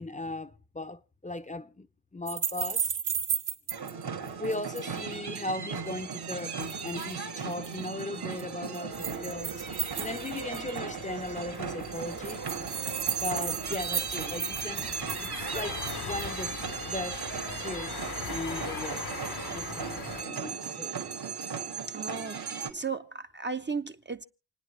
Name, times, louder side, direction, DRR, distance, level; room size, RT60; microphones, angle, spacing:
voice 1, 0.0-1.9 2.1-2.9 4.4-9.6 10.0-12.4 13.2-14.8 15.2-16.6 16.9-17.2 17.6-19.1 19.5-21.0, left 2 dB, 20° left, 0.6 m, -37 dB
sound 1, 2.3-3.9 4.3-5.0 6.4-7.1 7.5-7.7 8.4-10.9 11.3-11.4 11.5-11.6 11.8-16.4, right 7 dB, 90° right, 2.6 m, -34 dB
sound 2, 3.7-22.7, right 6 dB, 70° right, 2.2 m, -37 dB
sound 3, 8.9-20.2, left 7 dB, 60° left, 0.9 m, -42 dB
voice 2, 21.9-24.2, right 5 dB, 25° right, 0.6 m, -35 dB
28.5 x 9.6 x 3.3 m
wide cardioid pair, 85°, 40 cm